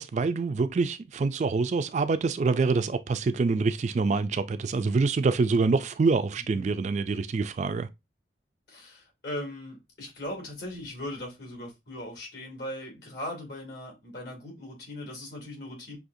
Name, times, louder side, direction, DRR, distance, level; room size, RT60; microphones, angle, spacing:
voice 1, 0.0-7.9, right 4 dB, 40° right, 0.3 m, -26 dB
voice 2, 8.7-16.0, left 1 dB, 70° left, 2.5 m, -39 dB
6.1 x 2.8 x 2.6 m
head